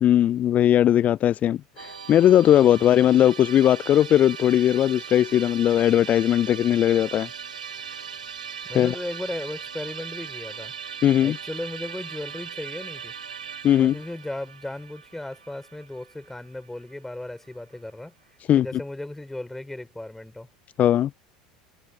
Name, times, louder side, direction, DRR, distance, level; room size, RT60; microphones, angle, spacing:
voice 1, 0.0-7.3 8.7-8.9 11.0-11.4 13.6-13.9 18.5-18.7 20.8-21.1, left 11 dB, 35° left, 0.4 m, -19 dB
Musical instrument, 1.8-16.9, right 7 dB, 85° right, 2.1 m, -39 dB
voice 2, 8.6-10.7 11.2-13.1 13.8-18.1 18.6-20.5, left 1 dB, 5° left, 5.5 m, -36 dB
hypercardioid pair, 80°, 4 cm